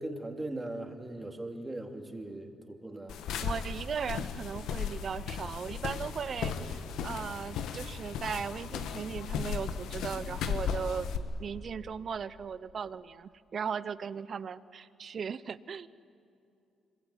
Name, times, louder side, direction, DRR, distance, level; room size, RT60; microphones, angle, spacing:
voice 1, 0.0-3.2, right 1 dB, 15° right, 3 dB, 3.0 m, -39 dB
sound 1, 3.1-11.2, left 7 dB, 80° left, 1.5 m, -36 dB
voice 2, 3.4-11.1 11.4-15.9, right 6 dB, 50° right, 17 dB, 0.8 m, -37 dB
26.0 x 22.5 x 9.9 m, 2.6 s
cardioid pair, 90°, 0 cm